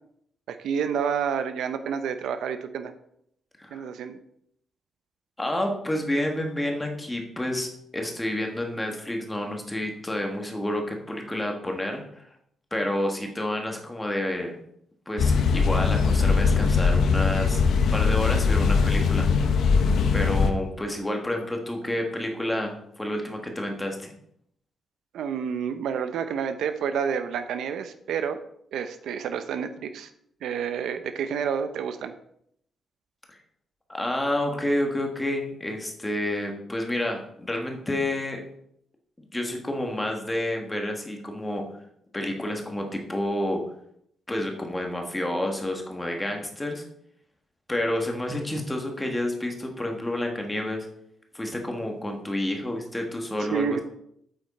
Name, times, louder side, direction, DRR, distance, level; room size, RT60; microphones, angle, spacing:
voice 1, 0.5-2.9 3.7-4.2 25.1-28.4 28.7-30.1 30.4-32.1 53.5-53.8, right 7 dB, 85° right, 9 dB, 0.8 m, -29 dB
voice 2, 3.6-3.9 5.4-12.3 12.7-14.6 15.1-19.3 20.1-24.1 33.3-33.4 33.9-38.4 39.3-41.7 42.1-43.7 44.3-46.8 47.7-50.9 51.3-53.8, left 1 dB, 10° left, 2 dB, 1.4 m, -29 dB
sound 1, 15.2-20.5, left 5 dB, 70° left, 1.0 m, -21 dB
8.8 x 7.9 x 4.3 m, 0.71 s
cardioid pair, 155°, 0 cm